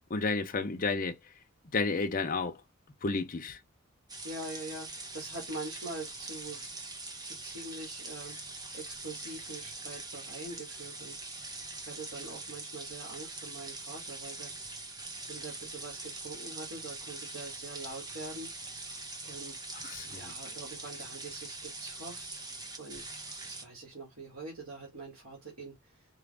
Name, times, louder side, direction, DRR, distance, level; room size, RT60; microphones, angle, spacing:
voice 1, 0.1-1.2 1.7-2.6 3.0-3.6 19.7-20.3, left 3 dB, 40° left, 0.7 m, -31 dB
sound 1, 4.1-23.6, right 2 dB, 20° right, 0.7 m, -43 dB
voice 2, 4.2-6.8 7.2-8.4 8.7-11.2 11.9-14.5 15.3-18.5 19.2-19.6 20.1-22.4 22.8-23.0 23.4-25.9, right 2 dB, 85° right, 1.8 m, -44 dB
4.7 x 2.5 x 3.4 m
head